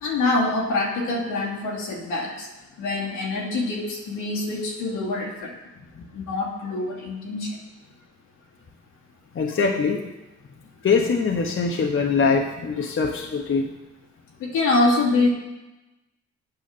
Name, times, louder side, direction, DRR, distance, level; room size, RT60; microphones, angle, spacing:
voice 1, 0.0-2.5 2.8-5.5 6.1-7.5 14.4-15.3, left 2 dB, 75° left, -2 dB, 2.5 m, -25 dB
voice 2, 9.3-10.0 10.8-13.7, left 5 dB, 40° left, 1 dB, 1.2 m, -23 dB
8.8 x 5.6 x 6.2 m, 1.0 s
supercardioid pair, 60°, 32 cm